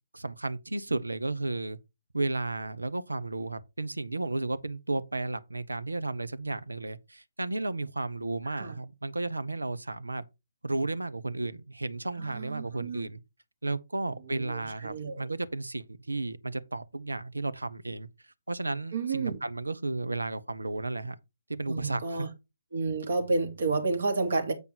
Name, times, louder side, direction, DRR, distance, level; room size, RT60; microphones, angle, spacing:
voice 1, 0.1-1.8 2.1-10.2 10.6-13.2 13.6-18.1 18.5-21.2 21.5-22.3, right 2 dB, 80° right, 0.9 m, -33 dB
voice 2, 12.2-13.1 14.3-15.3 18.9-19.4 21.7-22.3 22.7-24.5, right 3 dB, 60° right, 2.7 m, -30 dB
8.2 x 5.4 x 4.5 m
figure-of-eight pair, 140°, 0 cm